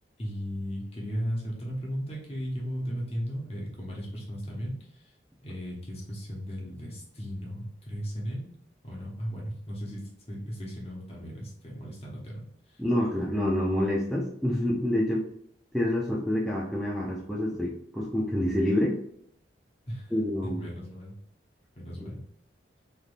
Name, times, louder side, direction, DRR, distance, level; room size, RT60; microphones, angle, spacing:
voice 1, 0.2-5.1 5.4-8.5 8.8-12.8 19.9-20.1 20.4-21.2 21.8-22.2, equal, 35° left, -3 dB, 1.0 m, -36 dB
voice 2, 12.8-15.3 15.7-19.0 20.1-20.6, left 1 dB, ahead, -5 dB, 0.4 m, -27 dB
3.3 x 2.6 x 2.5 m, 0.71 s
head